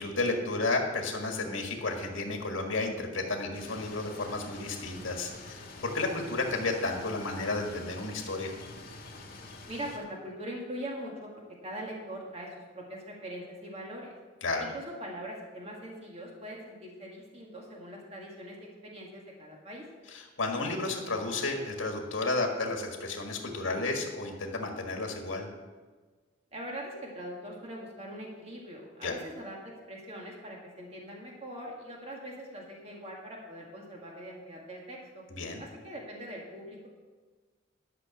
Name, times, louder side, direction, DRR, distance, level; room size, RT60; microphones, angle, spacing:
voice 1, 0.0-8.5 14.4-14.6 20.1-25.5 29.0-29.1 35.3-35.6, left 2 dB, 75° left, 2 dB, 1.7 m, -32 dB
sound 1, 3.5-10.0, left 2 dB, 50° left, 1.8 m, -46 dB
voice 2, 9.7-11.3 11.6-14.1 14.6-18.6 18.8-19.9 26.5-35.2 35.6-36.9, equal, 35° right, -2 dB, 1.9 m, -42 dB
12.0 x 5.8 x 7.1 m, 1.4 s
head